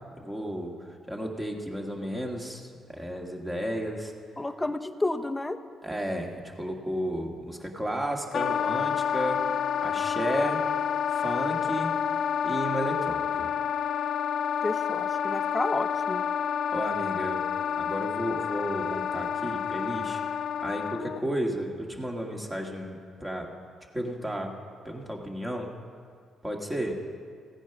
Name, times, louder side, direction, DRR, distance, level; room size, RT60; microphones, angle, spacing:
voice 1, 0.2-4.1 5.8-9.4 9.8-10.6 11.1-11.9 12.4-13.5 16.7-17.4 17.8-23.5 23.9-24.5 24.9-25.7 26.4-26.9, equal, 15° right, 1 dB, 1.8 m, -33 dB
voice 2, 4.4-5.6 14.6-16.2, left 2 dB, 10° left, 7 dB, 0.7 m, -31 dB
Wind instrument woodwind instrument, 8.3-21.2, left 8 dB, 60° left, 0.4 m, -29 dB
16.0 x 8.9 x 5.9 m, 2.1 s
cardioid pair, 90°, 0 cm